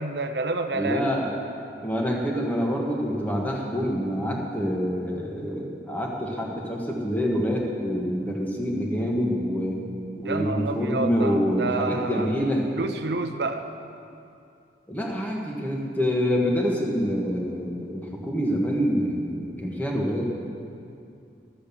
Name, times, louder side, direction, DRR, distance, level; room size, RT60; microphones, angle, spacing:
voice 1, 0.0-1.0 10.2-12.5 12.7-13.7, right 3 dB, 70° right, 6 dB, 0.8 m, -29 dB
voice 2, 0.7-1.3 1.8-9.8 10.2-12.7 14.9-20.2, equal, 10° left, -1 dB, 1.4 m, -26 dB
12.5 x 7.7 x 7.0 m, 2.5 s
head